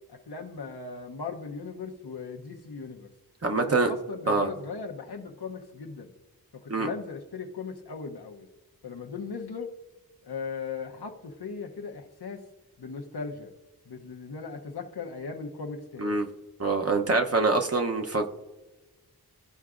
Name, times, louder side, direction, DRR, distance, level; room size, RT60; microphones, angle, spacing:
voice 1, 0.1-3.1 3.5-6.1 6.5-8.5 8.8-9.7 10.2-12.4 12.8-13.5 13.9-16.2, left 5 dB, 85° left, 2 dB, 0.9 m, -38 dB
voice 2, 3.4-3.9 4.3-4.5 6.7-6.9 16.0-16.3 16.6-18.3, right 3 dB, 40° right, 4 dB, 0.8 m, -25 dB
13.5 x 4.7 x 2.5 m, 1.2 s
wide cardioid pair, 55°, 38 cm